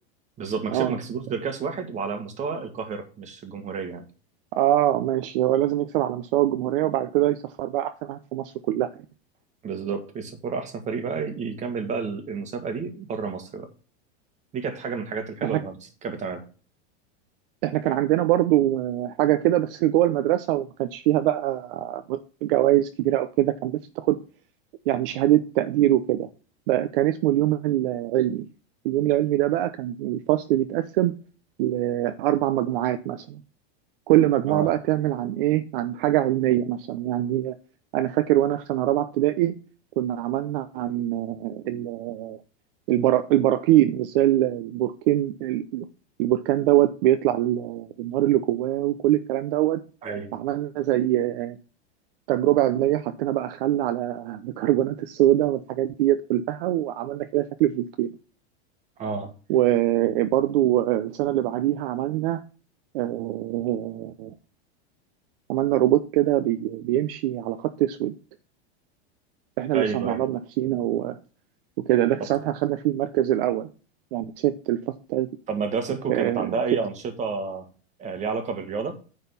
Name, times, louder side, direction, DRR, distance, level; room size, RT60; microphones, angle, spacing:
voice 1, 0.4-4.0 9.6-13.7 14.5-16.5 34.5-34.7 50.0-50.4 59.0-59.3 69.7-70.2 72.2-72.3 75.5-77.6 78.0-78.9, right 5 dB, 20° right, 1.7 m, -30 dB
voice 2, 4.5-8.9 15.4-15.6 17.6-24.2 24.9-26.3 26.7-28.5 28.8-31.2 31.6-33.4 34.1-37.6 37.9-39.5 40.0-42.4 42.9-45.9 46.2-49.8 50.3-51.6 52.3-58.1 59.5-62.4 62.9-64.3 65.5-68.1 69.6-71.2 71.9-73.7 74.1-75.3 76.1-76.5, right 13 dB, 55° right, 0.8 m, -23 dB
9.7 x 4.1 x 6.8 m
supercardioid pair, 160°, 32 cm